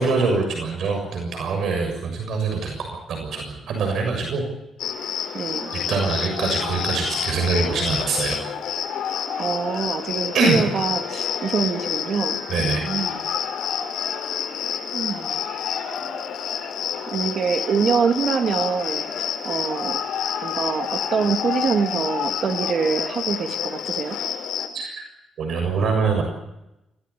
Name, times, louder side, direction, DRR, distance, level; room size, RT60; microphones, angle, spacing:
voice 1, 0.0-4.4 5.7-8.5 10.3-10.6 12.5-12.9 24.7-25.1 25.4-26.2, right 4 dB, 60° right, 3 dB, 6.8 m, -24 dB
Cricket, 4.8-24.7, left 8 dB, 70° left, 4.9 m, -28 dB
voice 2, 5.3-5.7 9.3-13.2 14.9-15.4 17.1-19.1 19.4-20.0 20.4-24.2, right 6 dB, 45° right, 5 dB, 2.5 m, -25 dB
26.5 x 17.5 x 8.5 m, 0.91 s
cardioid pair, 160°, 0 cm